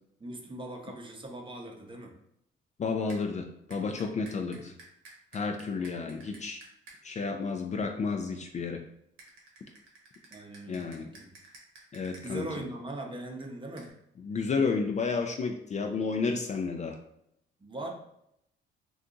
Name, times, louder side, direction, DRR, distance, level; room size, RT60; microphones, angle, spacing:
voice 1, 0.2-2.1 4.5-4.7 5.7-6.4 10.3-11.3 12.2-13.9 17.6-17.9, right 1 dB, 25° right, 2 dB, 0.7 m, -41 dB
voice 2, 2.8-4.7 5.3-6.6 7.0-8.8 10.7-11.1 11.9-12.4 14.2-17.0, left 4 dB, 35° left, 4 dB, 0.4 m, -31 dB
sound 1, 3.1-3.2 3.7-7.0 9.2-12.2 13.8-13.9, right 3 dB, 85° right, 0.9 m, -52 dB
2.7 x 2.4 x 3.7 m, 0.76 s
cardioid pair, 90°, 20 cm